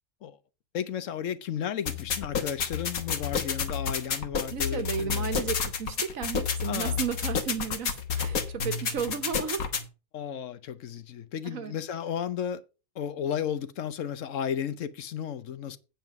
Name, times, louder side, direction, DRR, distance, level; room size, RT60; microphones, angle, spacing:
voice 1, 0.7-5.4 6.7-7.0 10.1-12.6 12.9-15.8, left 8 dB, 65° left, 1.1 m, -34 dB
sound 1, 1.9-9.8, left 6 dB, 85° left, 1.8 m, -30 dB
voice 2, 4.5-9.7 11.4-11.8, right 7 dB, 75° right, 1.5 m, -34 dB
8.8 x 5.7 x 5.8 m
omnidirectional pair, 1.4 m